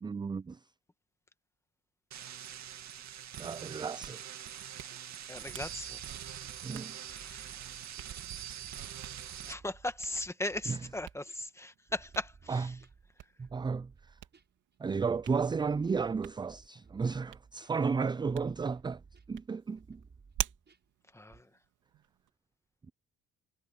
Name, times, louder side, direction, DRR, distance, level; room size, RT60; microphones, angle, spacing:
voice 1, 0.0-0.6 3.4-4.2 6.6-7.0 10.7-10.8 12.5-12.8 13.4-14.2 14.8-19.0 19.3-20.0, right 5 dB, 15° right, 0.3 m, -33 dB
sound 1, 2.1-9.5, right 10 dB, 65° right, 2.2 m, -44 dB
Hands, 3.8-22.3, right 13 dB, 85° right, 2.8 m, -48 dB
sound 2, 4.9-8.2 8.6-21.4, right 5 dB, 35° right, 7.1 m, -58 dB
voice 2, 5.3-6.0 7.1-7.4 9.4-12.7 21.1-21.5, left 1 dB, 10° left, 1.7 m, -38 dB
cardioid pair, 90°, 30 cm